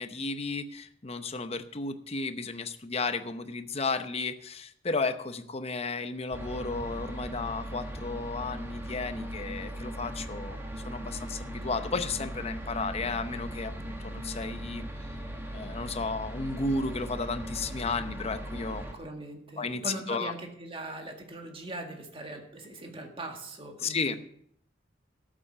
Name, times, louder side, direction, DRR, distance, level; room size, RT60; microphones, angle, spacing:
voice 1, 0.0-14.8 15.5-18.8 19.6-20.3 23.8-24.2, left 3 dB, 35° left, 10 dB, 0.8 m, -33 dB
sound 1, 6.3-18.9, right 1 dB, 15° right, 1.6 m, -39 dB
voice 2, 18.9-24.2, right 2 dB, 30° right, 3 dB, 1.9 m, -40 dB
13.0 x 7.6 x 5.6 m, 0.68 s
head